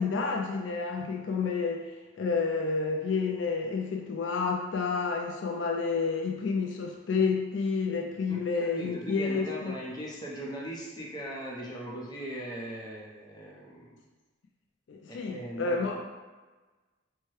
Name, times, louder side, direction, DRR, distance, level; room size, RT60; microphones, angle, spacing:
voice 1, 0.0-9.8 14.9-16.0, left 4 dB, 65° left, 1 dB, 0.3 m, -30 dB
voice 2, 8.3-14.0 15.1-16.0, right 1 dB, 20° left, -4 dB, 0.6 m, -39 dB
4.6 x 2.2 x 3.0 m, 1.3 s
head